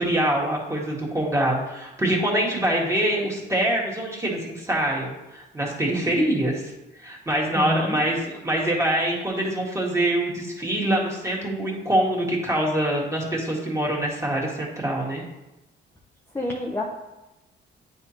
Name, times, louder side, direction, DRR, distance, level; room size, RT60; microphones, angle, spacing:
voice 1, 0.0-6.7 7.0-15.2, right 1 dB, 15° right, -3 dB, 1.8 m, -24 dB
voice 2, 7.5-8.0 16.3-16.8, left 1 dB, 10° left, -1 dB, 0.7 m, -28 dB
9.2 x 3.6 x 2.9 m, 0.98 s
cardioid pair, 90°, 20 cm